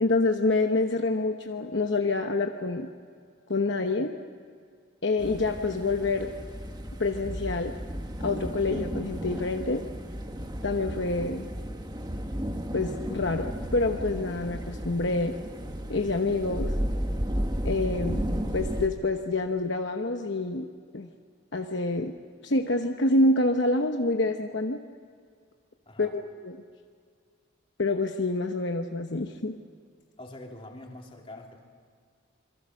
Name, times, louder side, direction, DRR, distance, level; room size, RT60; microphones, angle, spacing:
voice 1, 0.0-2.9 3.5-4.1 5.0-6.3 7.0-7.7 8.2-9.8 10.6-11.5 12.7-15.4 15.9-16.8 17.6-18.3 18.5-20.7 20.9-21.1 21.5-22.1 22.4-24.8 26.0-26.6 27.8-29.6, left 2 dB, 60° left, 4 dB, 1.0 m, -27 dB
sound 1, 5.2-18.9, equal, 20° right, 1.2 m, -33 dB
voice 2, 30.2-31.6, left 1 dB, 25° left, 0 dB, 3.0 m, -44 dB
26.5 x 23.0 x 6.4 m, 2.1 s
head